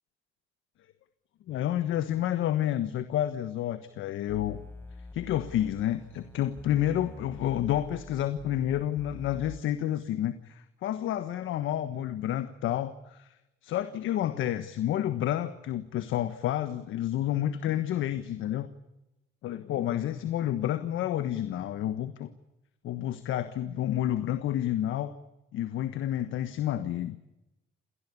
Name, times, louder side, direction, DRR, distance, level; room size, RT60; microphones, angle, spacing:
voice 1, 1.5-4.6 5.1-13.3 13.6-18.7 19.4-22.3 22.8-25.1 25.5-27.2, left 12 dB, 85° left, 11 dB, 1.4 m, -30 dB
sound 1, 4.3-9.6, left 2 dB, 10° left, 4.4 m, -46 dB
28.0 x 18.5 x 8.4 m, 0.93 s
cardioid pair, 90°, 20 cm